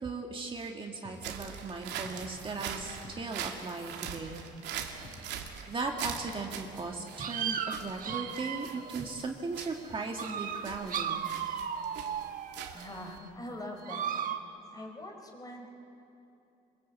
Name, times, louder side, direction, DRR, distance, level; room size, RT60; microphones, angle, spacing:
voice 1, 0.0-4.4 5.3-11.3, right 3 dB, 30° right, 1 dB, 2.0 m, -38 dB
sound 1, 1.0-7.3 8.0-8.3, left 3 dB, 50° left, 4.9 m, -54 dB
sound 2, 1.1-13.2, right 8 dB, 80° right, 2.5 m, -42 dB
sound 3, 4.8-4.9 5.8-5.9 6.8-6.9 7.2-9.0 9.8-9.9 10.2-12.9 13.8-14.4, right 8 dB, 50° right, 1.5 m, -35 dB
voice 2, 12.7-14.4 14.7-15.7, left 1 dB, 20° left, 2 dB, 4.5 m, -43 dB
25.0 x 22.5 x 8.5 m, 2.8 s
cardioid pair, 120°, 18 cm